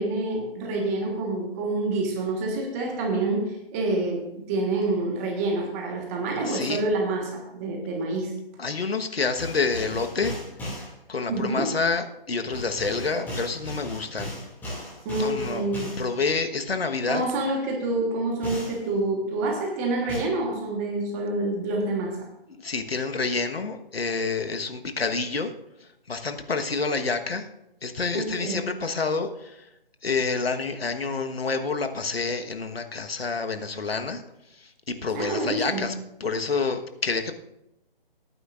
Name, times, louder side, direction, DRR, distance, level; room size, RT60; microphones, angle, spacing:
voice 1, 0.0-8.3 11.3-11.7 15.0-16.0 17.1-22.3 28.1-28.6 35.1-35.8, right 2 dB, 15° right, 2 dB, 1.4 m, -27 dB
voice 2, 6.4-6.8 8.6-10.4 11.1-14.3 15.2-15.7 16.0-17.2 22.5-25.5 26.1-27.5 27.8-29.6 30.0-34.2 34.6-35.9 36.2-37.3, left 4 dB, 80° left, 6 dB, 1.4 m, -28 dB
sound 1, 9.4-10.9 12.5-16.1 18.4-18.8 20.1-20.2, equal, 5° left, 2.3 m, -36 dB
18.5 x 9.6 x 2.5 m, 0.87 s
figure-of-eight pair, 155°, 29 cm